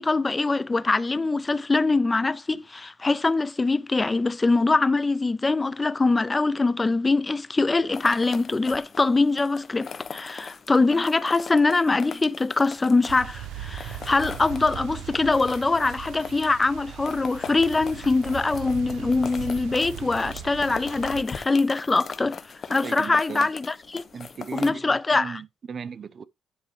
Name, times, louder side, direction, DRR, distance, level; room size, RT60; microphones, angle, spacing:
voice 1, 0.0-24.0 24.5-25.4, left 3 dB, 20° left, 0.4 m, -23 dB
sound 1, 7.9-24.7, left 6 dB, 45° left, 0.9 m, -40 dB
sound 2, 13.1-21.2, right 12 dB, 90° right, 0.7 m, -39 dB
voice 2, 22.8-23.5 24.1-26.2, right 6 dB, 50° right, 0.6 m, -37 dB
9.7 x 4.6 x 3.1 m
cardioid pair, 90°, 0 cm